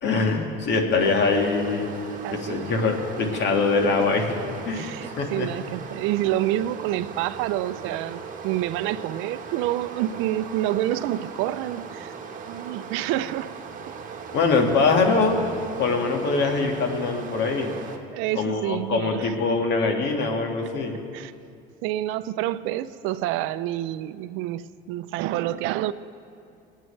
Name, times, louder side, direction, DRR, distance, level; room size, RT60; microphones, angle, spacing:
voice 1, 0.0-1.9 2.3-4.3 4.7-5.5 14.3-15.4 15.8-17.7 18.4-20.9, left 4 dB, 55° left, 3 dB, 1.8 m, -23 dB
Stream, 1.0-18.0, right 6 dB, 40° right, 1.3 m, -39 dB
voice 2, 2.2-2.6 4.7-12.1 12.5-13.6 18.1-19.3 21.1-21.3 21.8-25.9, right 14 dB, 70° right, 14 dB, 0.5 m, -28 dB
23.5 x 9.1 x 3.2 m, 2.5 s
supercardioid pair, 105°, 21 cm